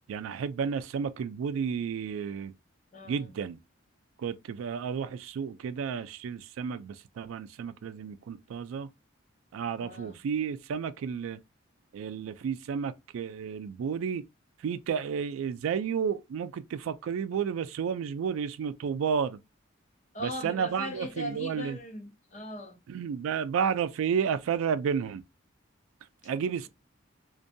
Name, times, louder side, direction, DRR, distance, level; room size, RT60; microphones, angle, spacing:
voice 1, 0.1-2.5 3.1-3.6 4.2-8.9 9.5-11.4 11.9-14.2 14.6-19.4 20.2-21.8 22.9-25.2 26.2-26.7, right 7 dB, 80° right, 0.3 m, -32 dB
voice 2, 2.9-3.3 9.8-10.1 20.1-22.8, equal, 35° left, 0.6 m, -39 dB
2.5 x 2.2 x 2.6 m
head